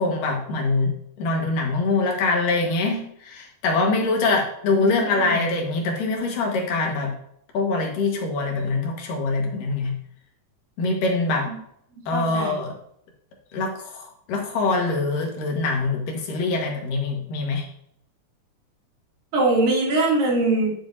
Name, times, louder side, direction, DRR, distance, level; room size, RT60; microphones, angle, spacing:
voice 1, 0.0-7.1 7.5-10.0 10.8-11.5 12.1-12.7 13.5-17.7, left 3 dB, 75° left, 1 dB, 3.2 m, -24 dB
voice 2, 4.7-5.4 11.5-11.6 12.1-12.6 19.3-20.7, right 2 dB, 85° right, -3 dB, 4.5 m, -22 dB
11.5 x 7.3 x 2.7 m, 0.71 s
omnidirectional pair, 3.9 m